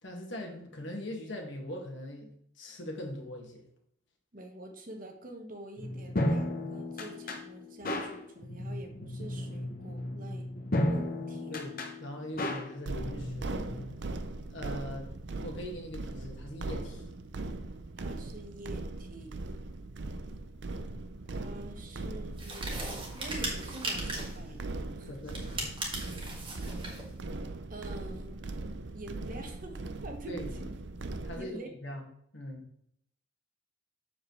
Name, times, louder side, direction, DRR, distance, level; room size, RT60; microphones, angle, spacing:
voice 1, 0.0-3.6 11.5-13.8 14.5-15.1 15.4-17.1 25.1-25.4 30.3-30.5 31.2-32.0 32.3-32.7, left 1 dB, 65° left, 2 dB, 1.8 m, -41 dB
voice 2, 4.3-10.5 10.9-11.6 18.0-19.4 21.3-24.6 25.0-25.1 26.4-26.5 27.7-28.5 28.9-30.7 31.4-31.7, right 1 dB, 40° right, 4 dB, 1.2 m, -46 dB
sound 1, 5.8-13.9, left 1 dB, 45° left, 1.0 m, -34 dB
sound 2, 12.9-31.4, right 2 dB, 60° right, 0.6 m, -39 dB
sound 3, 22.4-24.4 25.3-27.1, right 2 dB, 25° right, 1.7 m, -38 dB
7.6 x 7.1 x 3.1 m, 0.70 s
head